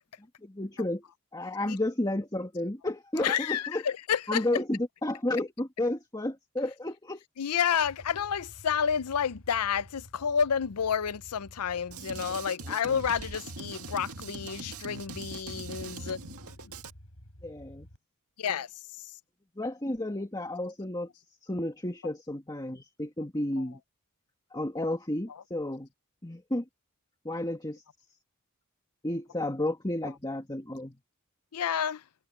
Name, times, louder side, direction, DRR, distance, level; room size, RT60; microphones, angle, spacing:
voice 1, 0.4-1.0 1.3-3.8 4.3-7.2 12.7-12.8 17.4-17.8 19.6-21.1 21.5-23.8 24.5-25.9 26.2-26.6 27.2-27.8 29.0-30.9, left 1 dB, 20° left, 1.9 m, -32 dB
voice 2, 3.2-4.4 7.4-16.2 18.4-18.7 31.5-32.0, left 7 dB, 90° left, 0.6 m, -30 dB
sound 1, 7.5-12.5 13.6-18.0, equal, 65° left, 6.0 m, -52 dB
Drum kit, 11.9-16.9, right 3 dB, 75° right, 1.9 m, -41 dB
head